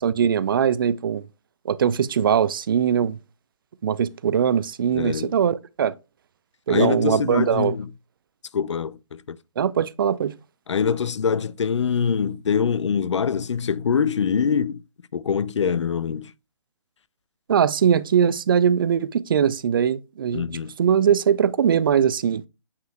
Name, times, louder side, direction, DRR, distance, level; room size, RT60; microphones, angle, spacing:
voice 1, 0.0-1.2 1.7-3.2 3.8-5.9 6.7-7.8 9.6-10.3 17.5-20.5 20.8-22.4, right 8 dB, 40° right, 0.4 m, -21 dB
voice 2, 4.9-5.4 6.7-7.9 8.5-9.4 10.7-14.8 15.1-16.3 20.3-20.7, left 6 dB, 65° left, 0.4 m, -24 dB
8.2 x 5.2 x 2.2 m
figure-of-eight pair, 135°, 17 cm